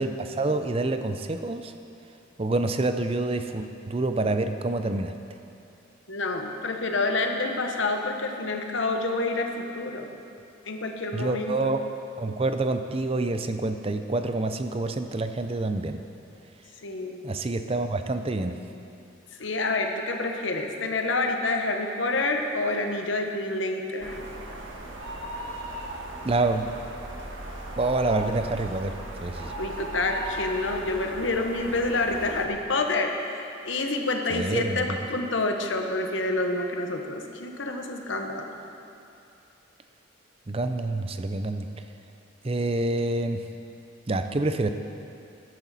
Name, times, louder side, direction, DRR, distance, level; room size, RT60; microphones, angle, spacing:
voice 1, 0.0-1.7 2.4-5.1 11.1-11.9 12.2-16.0 17.2-18.6 26.2-26.7 27.8-28.9 29.2-29.5 34.3-35.0 40.5-41.7 42.4-43.4 44.1-44.7, right 2 dB, 30° right, 8 dB, 0.5 m, -27 dB
voice 2, 6.1-10.1 10.7-11.6 16.8-17.4 19.4-24.3 29.6-38.5, left 2 dB, 70° left, 4 dB, 1.1 m, -28 dB
sound 1, 24.0-32.5, right 1 dB, 70° right, 1.4 m, -37 dB
14.0 x 11.0 x 4.2 m, 2.7 s
head